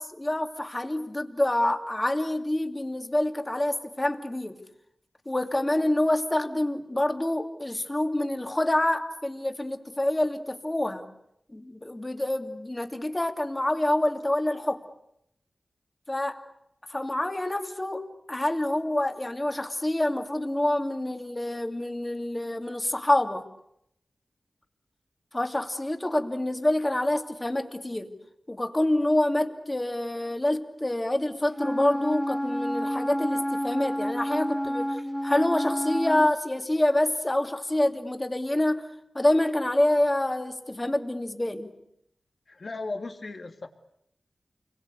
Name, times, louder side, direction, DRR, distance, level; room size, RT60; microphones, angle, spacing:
voice 1, 0.0-4.6 5.3-11.1 11.5-14.8 16.1-16.4 16.9-23.4 25.3-28.1 28.5-35.0 35.2-38.9 39.1-41.7, left 1 dB, 20° left, 5 dB, 2.7 m, -27 dB
Wind instrument woodwind instrument, 31.5-36.3, equal, 5° left, 1.0 m, -29 dB
voice 2, 42.5-43.7, left 3 dB, 60° left, 5 dB, 2.7 m, -36 dB
29.0 x 22.5 x 8.3 m, 0.76 s
wide cardioid pair, 80°, 0 cm